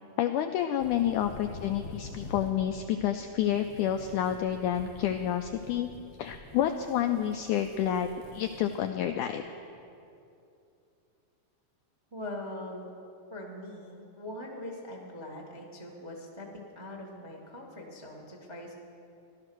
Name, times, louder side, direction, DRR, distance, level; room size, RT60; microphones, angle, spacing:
voice 1, 0.2-5.9 6.2-9.4, left 10 dB, 90° left, 7 dB, 1.7 m, -29 dB
sound 1, 0.8-8.9, left 3 dB, 60° left, 1.5 m, -47 dB
voice 2, 12.1-12.9 13.3-18.7, left 1 dB, 40° right, 0 dB, 0.4 m, -42 dB
16.0 x 12.5 x 6.2 m, 2.7 s
omnidirectional pair, 4.2 m